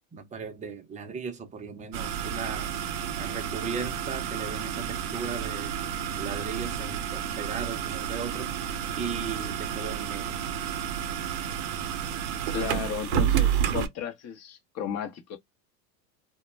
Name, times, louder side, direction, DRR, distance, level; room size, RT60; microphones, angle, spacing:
voice 1, 0.1-2.7 3.2-5.7 6.2-8.6 9.0-10.4, right 5 dB, 15° right, 0.6 m, -37 dB
sound 1, 1.9-13.9, right 9 dB, 60° right, 0.7 m, -30 dB
voice 2, 12.5-15.4, left 8 dB, 35° left, 0.8 m, -34 dB
2.2 x 2.1 x 3.1 m
supercardioid pair, 115°, 46 cm